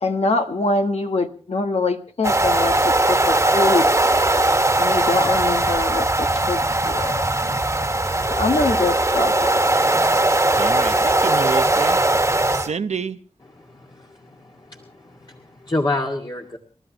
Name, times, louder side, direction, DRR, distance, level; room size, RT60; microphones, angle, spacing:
voice 1, 0.0-3.8 4.8-7.1 8.3-9.5, left 3 dB, 65° left, 1.3 m, -24 dB
sound 1, 2.2-12.7, right 2 dB, 25° right, 1.6 m, -19 dB
voice 2, 10.5-12.0 12.5-13.2, right 6 dB, 80° right, 0.8 m, -28 dB
voice 3, 13.6-16.6, left 2 dB, 40° left, 2.2 m, -29 dB
29.5 x 12.5 x 3.0 m
cardioid pair, 50°, 11 cm